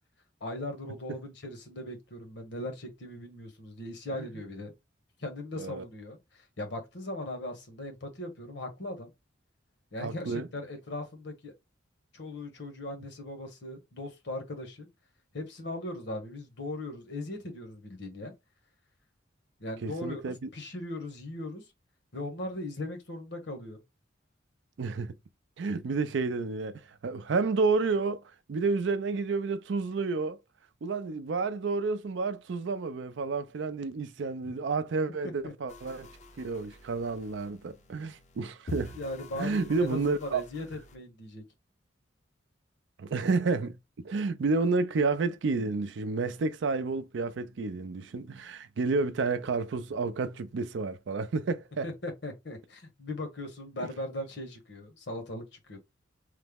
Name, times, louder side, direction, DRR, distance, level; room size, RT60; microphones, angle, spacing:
voice 1, 0.4-4.7 5.2-9.1 9.9-11.5 12.1-14.9 15.3-18.3 19.6-21.6 22.1-23.8 35.2-35.5 38.9-41.4 51.8-55.8, left 1 dB, 60° left, 1.0 m, -39 dB
voice 2, 10.0-10.5 19.8-20.4 24.8-25.2 25.6-28.2 28.5-30.4 30.8-36.1 36.4-39.0 39.4-40.4 43.0-43.8 44.0-51.9, right 4 dB, 70° right, 0.4 m, -30 dB
sound 1, 35.7-41.0, left 2 dB, 35° left, 0.4 m, -47 dB
3.2 x 2.0 x 3.4 m
head